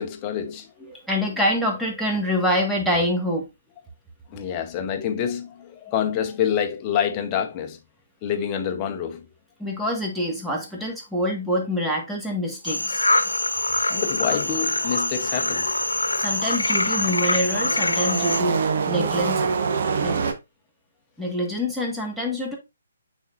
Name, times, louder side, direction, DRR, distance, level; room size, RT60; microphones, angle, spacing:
voice 1, 0.0-0.9 4.3-7.8 8.2-9.2 13.8-15.7 16.0-16.2, left 8 dB, 25° left, 1.0 m, -27 dB
voice 2, 0.9-3.5 9.6-13.0 16.2-19.5 20.0-20.3 21.2-22.6, left 1 dB, ahead, 1.7 m, -26 dB
sound 1, 12.7-18.4, left 2 dB, 85° left, 0.9 m, -24 dB
sound 2, 16.3-20.3, right 5 dB, 50° right, 1.1 m, -25 dB
9.0 x 4.4 x 2.5 m
figure-of-eight pair, 135°, 0 cm